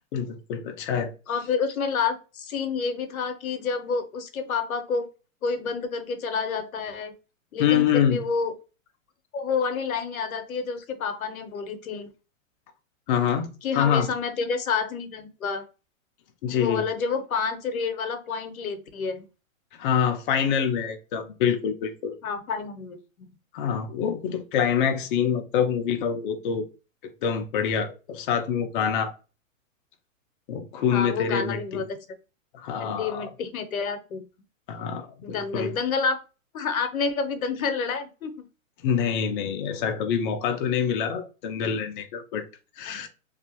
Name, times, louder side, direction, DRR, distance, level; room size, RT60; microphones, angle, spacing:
voice 1, 0.1-1.1 7.6-8.2 13.1-14.1 16.4-16.8 19.8-22.2 23.5-26.7 27.2-29.1 30.5-31.8 32.5-33.3 34.7-35.7 38.8-42.4 42.8-43.1, left 7 dB, 40° left, 0.5 m, -26 dB
voice 2, 1.3-5.1 5.4-7.1 7.5-8.5 9.3-12.1 13.6-15.6 16.5-19.2 22.2-23.0 30.9-32.0 32.8-34.2 35.2-36.2 36.5-38.3 42.9-43.1, left 5 dB, 90° left, 0.8 m, -29 dB
2.6 x 2.4 x 2.8 m
hypercardioid pair, 135°, 41 cm